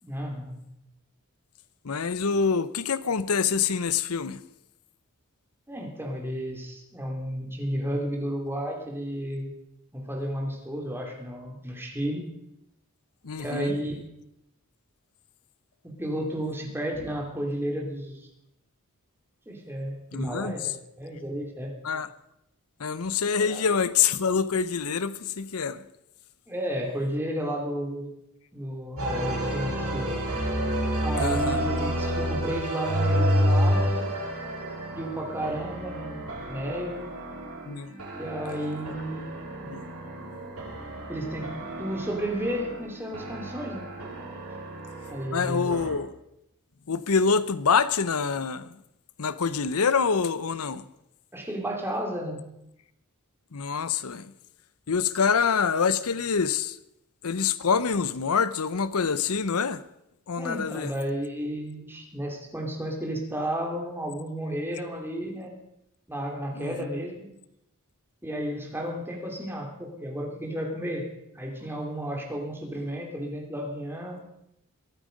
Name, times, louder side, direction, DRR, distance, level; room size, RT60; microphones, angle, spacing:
voice 1, 0.0-0.6 5.7-9.5 9.9-12.3 13.4-14.0 15.8-18.3 19.5-21.7 23.4-23.6 26.5-28.1 28.5-30.2 31.0-34.1 34.9-36.2 36.5-37.1 38.1-39.4 41.1-41.5 41.8-43.8 45.1-45.8 51.3-52.4 60.4-65.5 66.1-67.3 68.2-71.1 71.3-74.2, equal, 10° right, 2.8 m, -32 dB
voice 2, 1.8-4.4 13.2-13.8 20.1-20.7 21.8-22.1 22.8-25.8 31.2-31.6 37.6-38.0 39.6-39.8 45.3-46.2 46.9-48.8 49.2-50.9 53.5-54.3 54.9-56.8 57.2-59.8 60.3-60.9 66.5-66.9, left 6 dB, 70° left, 0.7 m, -26 dB
sound 1, 29.0-45.9, equal, 85° right, 7.6 m, -30 dB
22.5 x 9.0 x 5.2 m
head